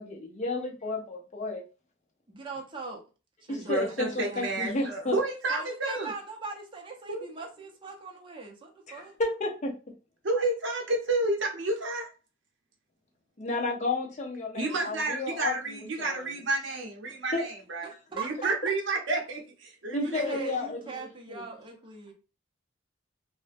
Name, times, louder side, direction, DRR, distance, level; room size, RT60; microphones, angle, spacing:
voice 1, 0.0-1.6 3.5-5.2 8.9-9.7 13.4-15.6 16.0-16.3 17.3-17.4 19.9-20.8 21.3-21.4, left 2 dB, 40° left, 1 dB, 0.6 m, -32 dB
voice 2, 2.3-3.0 3.5-4.9 5.5-9.2 17.8-18.7 20.0-22.1, right 4 dB, 25° right, 0 dB, 0.5 m, -41 dB
voice 3, 3.6-6.1 7.1-7.2 10.2-12.1 14.5-17.9 18.1-20.4, right 2 dB, 70° right, 0 dB, 0.7 m, -30 dB
2.4 x 2.1 x 2.4 m, 0.33 s
head